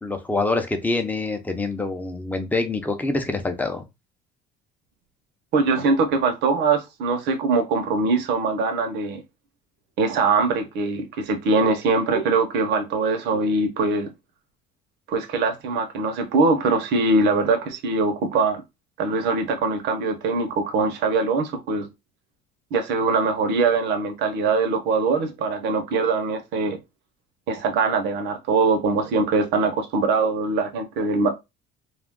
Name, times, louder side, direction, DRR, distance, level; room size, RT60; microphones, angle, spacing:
voice 1, 0.0-3.8, left 3 dB, 10° left, 0.6 m, -25 dB
voice 2, 5.5-9.2 10.0-14.1 15.1-18.6 19.0-21.9 22.7-26.8 27.5-31.3, right 3 dB, 75° right, 0.8 m, -22 dB
2.4 x 2.2 x 3.5 m
cardioid pair, 110°, 18 cm